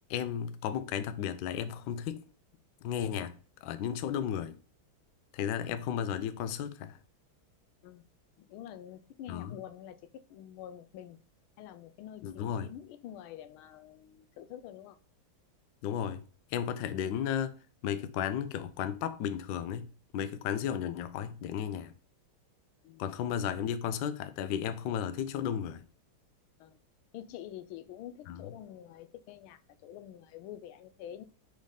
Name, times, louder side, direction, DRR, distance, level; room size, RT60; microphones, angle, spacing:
voice 1, 0.1-2.2 2.8-4.6 5.3-7.0 9.3-9.6 12.2-12.7 15.8-16.2 16.5-17.6 17.8-21.9 23.0-25.8 28.3-28.5, left 9 dB, 70° left, 1.2 m, -34 dB
voice 2, 8.4-11.2 11.6-15.0 22.8-23.1 26.6-26.8 27.1-31.2, left 11 dB, 90° left, 1.5 m, -47 dB
5.1 x 3.9 x 5.2 m
omnidirectional pair, 2.2 m